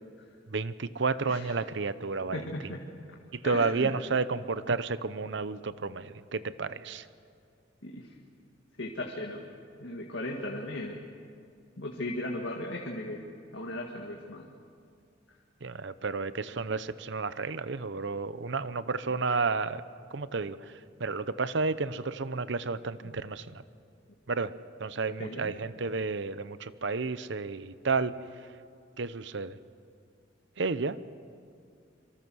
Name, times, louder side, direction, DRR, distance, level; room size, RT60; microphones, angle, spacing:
voice 1, 0.5-2.5 3.3-7.0 15.6-19.8 20.1-20.6 21.0-23.6 24.3-24.5 24.8-28.1 29.0-29.5 30.6-31.1, right 4 dB, 70° right, 14 dB, 0.8 m, -31 dB
voice 2, 2.3-2.8 3.4-3.9 7.8-8.1 8.8-9.4 9.8-11.1 11.8-13.3 13.5-14.4 23.0-23.2 25.2-25.5, left 1 dB, 75° left, 0 dB, 2.0 m, -37 dB
26.5 x 24.5 x 6.4 m, 2.3 s
head